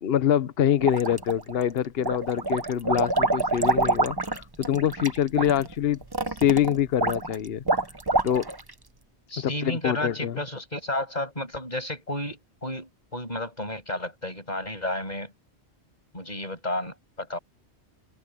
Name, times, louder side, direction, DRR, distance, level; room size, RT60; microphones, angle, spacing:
voice 1, 0.0-6.0 6.3-7.6 8.2-8.5 9.4-10.4, left 10 dB, 65° left, 1.0 m, -25 dB
sound 1, 0.8-1.6 2.0-8.7, right 2 dB, 20° right, 1.0 m, -26 dB
voice 2, 9.3-15.3 16.1-17.4, left 1 dB, 40° left, 8.3 m, -32 dB
omnidirectional pair, 1.1 m